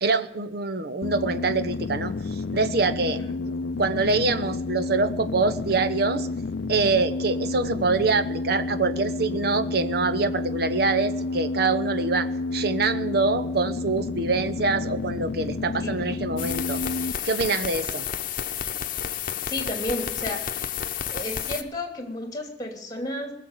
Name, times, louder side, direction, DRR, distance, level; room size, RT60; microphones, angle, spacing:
voice 1, 0.0-3.2 3.8-6.3 6.7-16.8 17.2-18.0, right 3 dB, 60° right, 12 dB, 1.0 m, -25 dB
sound 1, 1.0-17.1, left 3 dB, 70° left, 0.4 m, -30 dB
sound 2, 16.4-21.6, left 9 dB, 50° left, 1.0 m, -31 dB
voice 2, 19.5-20.7 21.1-23.3, left 1 dB, 20° left, 4 dB, 2.7 m, -32 dB
19.5 x 7.3 x 9.0 m, 0.85 s
head